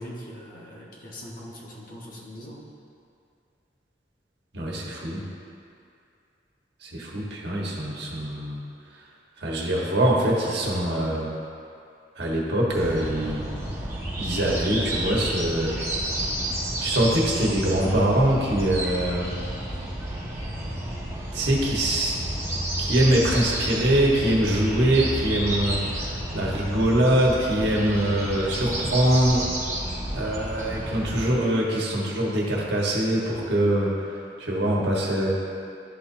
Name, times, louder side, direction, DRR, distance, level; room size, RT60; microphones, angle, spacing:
voice 1, 0.0-2.6, equal, 50° left, -4 dB, 1.2 m, -41 dB
voice 2, 4.5-5.2 6.8-8.6 9.4-11.3 12.2-13.5 14.2-15.7 16.8-19.3 21.3-22.1 22.6-29.4 30.1-34.1 34.4-35.3, right 1 dB, 65° right, -4 dB, 1.3 m, -23 dB
sound 1, 12.7-31.3, right 1 dB, 15° right, 1.3 m, -31 dB
12.0 x 4.1 x 2.7 m, 2.5 s
head